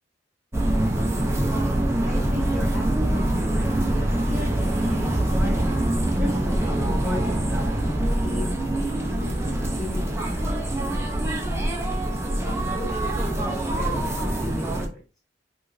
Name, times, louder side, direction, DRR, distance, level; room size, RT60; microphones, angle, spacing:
sound 1, 0.5-14.9, right 1 dB, 15° right, 0.5 m, -24 dB
voice 1, 2.0-5.8 6.2-8.5 9.1-11.6 12.0-15.0, left 2 dB, ahead, -6 dB, 1.8 m, -37 dB
4.9 x 2.5 x 2.4 m, 0.32 s
head